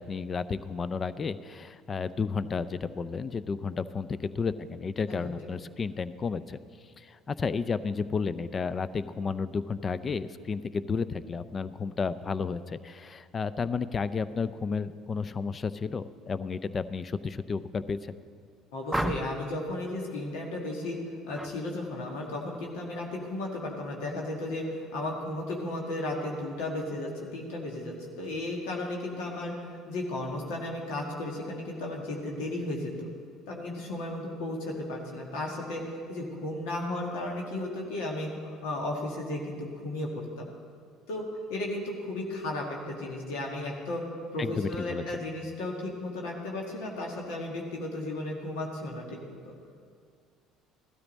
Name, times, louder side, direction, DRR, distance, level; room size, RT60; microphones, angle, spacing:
voice 1, 0.0-6.6 7.0-18.0 44.4-45.2, left 5 dB, 35° left, 15 dB, 0.5 m, -32 dB
voice 2, 18.7-21.0 21.3-33.1 33.5-40.5 41.1-44.0 44.3-49.5, left 1 dB, 70° left, -1 dB, 1.8 m, -34 dB
sound 1, 18.9-19.5 21.3-21.5 21.9-22.3, equal, ahead, 0.8 m, -33 dB
15.5 x 13.0 x 4.1 m, 2.1 s
hypercardioid pair, 65°, 0 cm